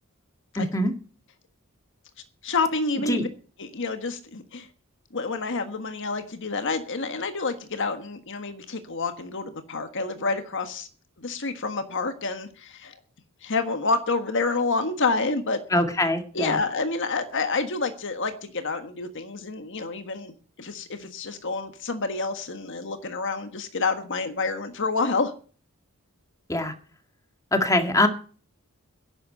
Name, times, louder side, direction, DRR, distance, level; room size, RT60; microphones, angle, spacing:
voice 1, 0.6-0.9 3.1-3.2 15.7-16.6 26.5-26.7 27.5-28.1, left 1 dB, 15° left, 6 dB, 1.9 m, -23 dB
voice 2, 2.4-3.3 3.6-4.7 5.1-10.9 11.2-13.0 13.4-15.6 16.3-25.3, left 3 dB, 55° left, 8 dB, 1.5 m, -28 dB
11.5 x 8.1 x 8.7 m, 0.41 s
head